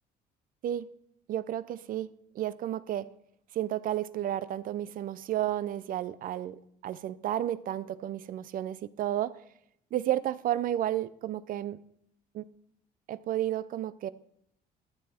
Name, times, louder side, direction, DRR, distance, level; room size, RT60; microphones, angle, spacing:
voice 1, 1.3-2.1 2.3-3.1 3.5-9.4 9.9-11.8 12.3-12.5 13.1-14.1, right 12 dB, 55° right, 0.5 m, -32 dB
12.5 x 7.8 x 4.3 m
cardioid pair, 110°, 17 cm